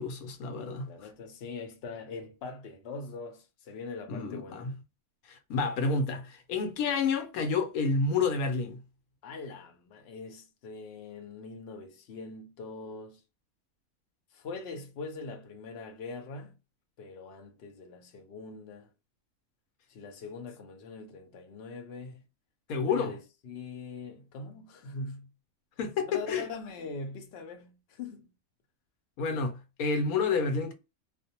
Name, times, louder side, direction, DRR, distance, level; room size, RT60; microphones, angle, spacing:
voice 1, 0.0-1.1 4.1-4.7 5.3-8.8 22.7-23.1 25.8-26.5 29.2-30.7, left 4 dB, 80° left, 1.0 m, -29 dB
voice 2, 0.9-4.7 9.2-13.2 14.3-16.5 17.0-18.9 19.9-22.2 22.8-25.3 26.0-28.3, left 3 dB, 60° left, 0.7 m, -42 dB
2.5 x 2.0 x 2.7 m
omnidirectional pair, 1.5 m